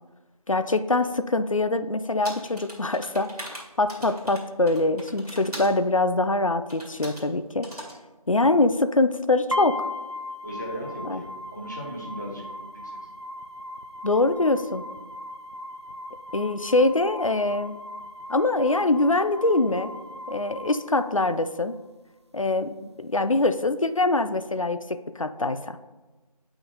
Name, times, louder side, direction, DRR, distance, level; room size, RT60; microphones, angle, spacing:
voice 1, 0.5-7.7 8.3-9.9 11.0-11.2 14.0-14.8 16.3-17.8 18.3-19.9 20.3-21.7 22.3-25.8, left 2 dB, 55° left, 11 dB, 0.4 m, -24 dB
sound 1, 2.2-5.8 6.7-7.3 7.6-8.0, right 1 dB, 75° right, 2.1 m, -41 dB
sound 2, 9.5-21.5, left 1 dB, 45° right, 0.4 m, -38 dB
voice 2, 10.4-12.4 12.7-13.0, equal, 30° left, -3 dB, 1.2 m, -37 dB
9.2 x 5.7 x 2.8 m, 1.2 s
figure-of-eight pair, 175°, 20 cm